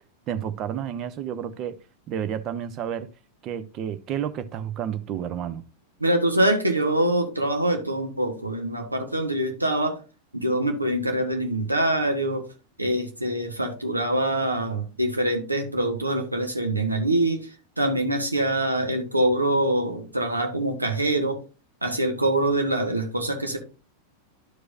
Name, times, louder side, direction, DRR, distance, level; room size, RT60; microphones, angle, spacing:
voice 1, 0.3-1.8 2.1-3.1 3.4-5.6, right 9 dB, 35° right, 0.7 m, -30 dB
voice 2, 6.0-10.0 10.3-12.4 12.8-17.5 17.8-21.4 21.8-23.6, right 1 dB, 85° right, 1.2 m, -24 dB
11.5 x 4.9 x 2.6 m
figure-of-eight pair, 90°, 0 cm